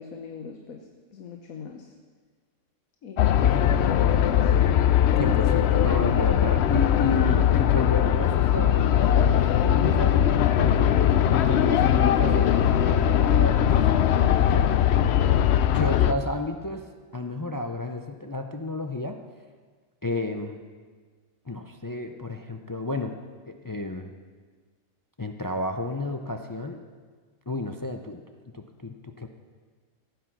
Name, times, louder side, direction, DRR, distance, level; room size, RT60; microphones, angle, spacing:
voice 1, 0.0-1.9 3.0-4.7, left 6 dB, 85° left, 4 dB, 1.3 m, -40 dB
sound 1, 3.2-16.1, left 10 dB, 65° left, 0.7 m, -20 dB
voice 2, 5.2-11.0 11.3-14.7 15.7-19.2 20.0-20.6 21.5-23.2 23.5-24.1 25.2-26.8 27.5-28.2 28.5-29.3, left 2 dB, 30° left, 5 dB, 0.3 m, -32 dB
15.5 x 9.2 x 6.0 m, 1.5 s
omnidirectional pair, 1.4 m